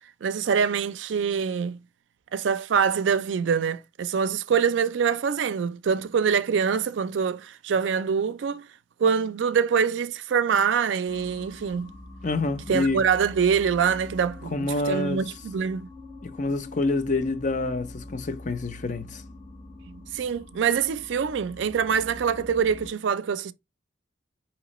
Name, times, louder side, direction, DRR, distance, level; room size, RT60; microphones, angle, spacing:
voice 1, 0.2-1.8 2.3-8.7 9.0-11.9 12.7-15.9 19.9-23.5, right 6 dB, 80° right, 0.4 m, -25 dB
sound 1, 11.1-22.9, left 2 dB, 10° left, 2.0 m, -44 dB
voice 2, 12.2-13.0 14.5-15.2 16.2-19.2, left 2 dB, 45° left, 0.5 m, -27 dB
5.0 x 2.9 x 3.0 m
head